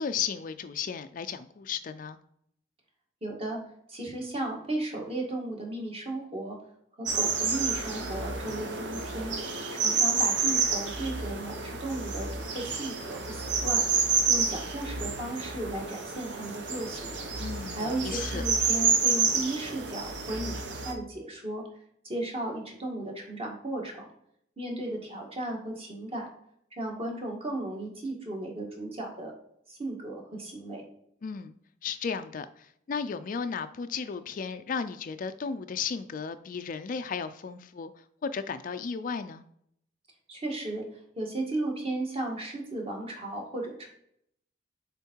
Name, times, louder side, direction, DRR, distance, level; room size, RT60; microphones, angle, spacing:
voice 1, 0.0-2.2 17.4-18.4 31.2-31.5 31.8-39.4, left 6 dB, 45° left, 11 dB, 0.4 m, -34 dB
voice 2, 3.2-3.6 3.9-6.6 7.0-9.3 9.7-13.8 14.3-17.1 17.7-21.6 22.0-24.1 24.6-26.3 26.7-29.3 29.7-30.8 40.3-43.9, right 1 dB, 30° right, 0 dB, 1.7 m, -35 dB
sound 1, 7.1-20.9, right 4 dB, 65° right, 0.9 m, -29 dB
7.1 x 3.7 x 4.5 m, 0.71 s
head